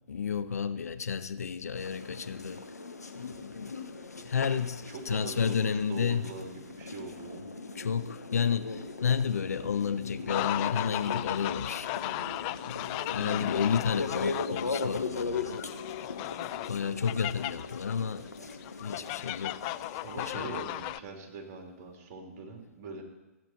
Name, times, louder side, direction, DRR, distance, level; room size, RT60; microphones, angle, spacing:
voice 1, 0.1-2.6 3.1-3.8 4.2-6.2 7.8-11.9 12.7-15.6 16.7-18.3 18.8-19.8 20.2-20.7, left 6 dB, 75° left, 0.7 m, -31 dB
sound 1, 1.7-20.3, left 3 dB, 90° left, 1.0 m, -39 dB
voice 2, 4.9-7.5 13.2-13.7 20.0-23.0, right 4 dB, 40° right, 3.4 m, -43 dB
sound 2, 10.3-21.0, left 18 dB, 30° left, 0.3 m, -36 dB
15.5 x 9.1 x 4.6 m
figure-of-eight pair, 120°, 8 cm